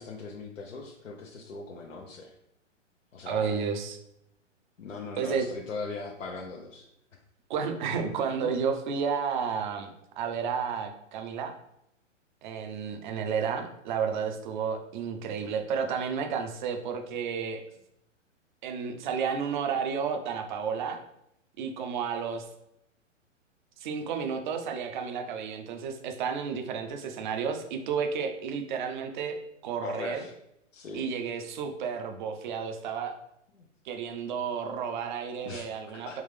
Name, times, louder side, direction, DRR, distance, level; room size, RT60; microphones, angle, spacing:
voice 1, 0.0-2.3 3.1-3.5 4.8-6.9 8.4-8.5 29.8-30.3 30.7-31.1 33.6-33.7 35.4-36.2, left 3 dB, 80° left, -1 dB, 0.7 m, -40 dB
voice 2, 3.3-4.0 5.2-5.5 7.5-9.9 10.2-11.5 12.4-17.6 18.6-21.0 21.6-22.5 23.8-29.4 29.6-30.2 30.9-33.1 33.8-36.2, right 6 dB, 40° right, 5 dB, 0.6 m, -31 dB
3.6 x 3.1 x 3.3 m, 0.80 s
figure-of-eight pair, 120°, 38 cm